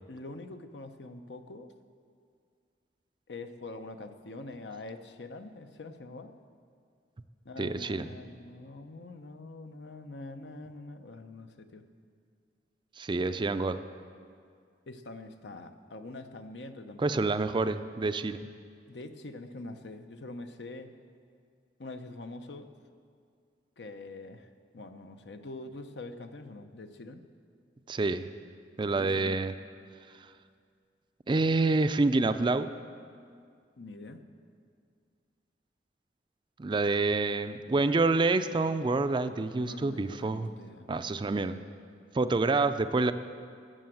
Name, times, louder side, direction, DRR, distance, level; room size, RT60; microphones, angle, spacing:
voice 1, 0.1-1.7 3.3-6.3 7.4-11.9 14.9-17.3 18.9-20.9 21.8-22.7 23.8-27.2 28.9-29.4 33.8-34.2 39.6-41.3, left 2 dB, 80° left, 8 dB, 0.8 m, -44 dB
voice 2, 7.6-8.1 13.0-13.8 17.0-18.5 27.9-28.2 28.8-29.5 31.3-32.7 36.6-40.5 40.9-41.6 42.1-43.1, right 3 dB, 25° right, 11 dB, 0.4 m, -27 dB
13.0 x 7.7 x 7.7 m, 2.2 s
head